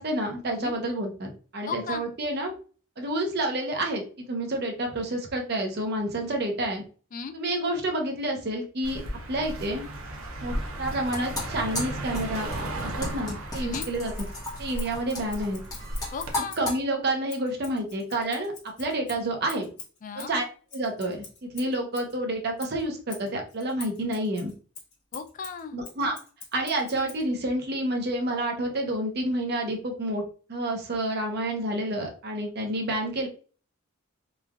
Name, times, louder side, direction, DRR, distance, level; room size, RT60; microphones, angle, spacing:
voice 1, 0.0-2.5 3.0-6.8 7.3-9.0 9.3-9.9 10.4-12.5 12.8-14.1 14.6-15.6 16.6-18.5 18.8-19.7 20.2-20.4 20.7-24.5 25.7-26.2 26.5-30.2 30.5-33.3, right 1 dB, 50° right, 2 dB, 0.7 m, -29 dB
voice 2, 1.6-2.1 7.1-7.3 13.6-13.9 16.1-16.6 20.0-20.3 25.1-25.8, left 6 dB, 40° left, 8 dB, 0.3 m, -35 dB
Car passing by, 8.8-16.3, right 1 dB, 85° right, 0.7 m, -35 dB
sound 1, 10.7-16.8, left 2 dB, 20° left, 1.0 m, -35 dB
Scissors, 13.8-16.7 17.3-22.2 22.6-27.3, left 4 dB, 55° left, 1.2 m, -46 dB
3.1 x 2.4 x 2.3 m, 0.38 s
head